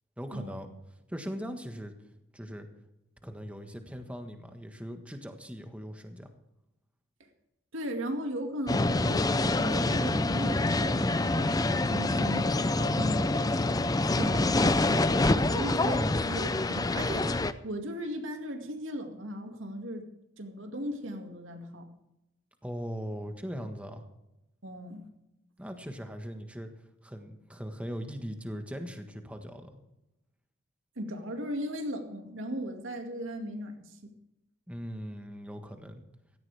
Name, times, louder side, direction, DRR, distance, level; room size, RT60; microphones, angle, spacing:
voice 1, 0.2-0.7 1.1-1.9 2.3-2.7 3.2-6.3 15.8-16.2 22.6-24.0 25.6-26.7 27.0-29.7 34.7-36.0, equal, 5° right, 5 dB, 1.4 m, -39 dB
voice 2, 7.7-13.6 14.1-20.1 20.4-21.9 24.6-25.0 31.0-34.1, equal, 80° right, 4 dB, 2.2 m, -37 dB
sound 1, 8.7-17.5, left 2 dB, 20° left, 0.5 m, -26 dB
16.5 x 14.0 x 3.5 m, 0.89 s
head